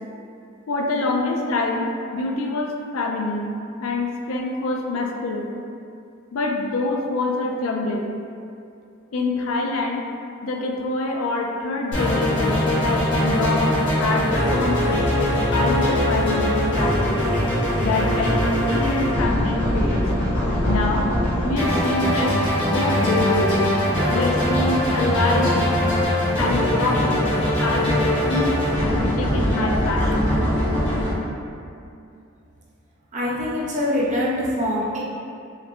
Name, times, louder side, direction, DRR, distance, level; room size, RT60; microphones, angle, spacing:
voice 1, 0.7-3.5 3.8-5.5 6.3-8.1 9.1-10.0 10.4-17.2 17.8-20.0 20.7-21.1 21.4-23.6 24.1-25.9 26.4-28.0 28.3-30.3, left 2 dB, 70° left, 1 dB, 0.4 m, -25 dB
sound 1, 11.9-31.1, equal, 55° left, 1.2 m, -21 dB
voice 2, 33.1-35.0, left 1 dB, 35° right, -5 dB, 0.6 m, -24 dB
4.9 x 2.1 x 3.0 m, 2.5 s
head